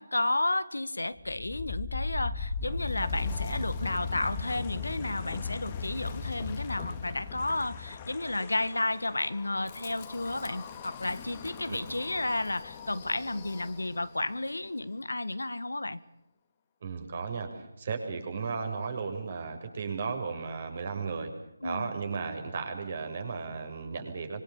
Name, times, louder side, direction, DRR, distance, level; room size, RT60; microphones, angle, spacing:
voice 1, 0.0-16.0 21.6-21.9, left 2 dB, 80° left, 14 dB, 1.6 m, -32 dB
Wind, 1.2-14.2, left 4 dB, 25° left, 2.5 m, -38 dB
voice 2, 16.8-21.3 21.6-24.4, right 5 dB, 40° right, 5 dB, 6.5 m, -35 dB
25.5 x 24.0 x 7.1 m, 0.80 s
figure-of-eight pair, 155°, 0 cm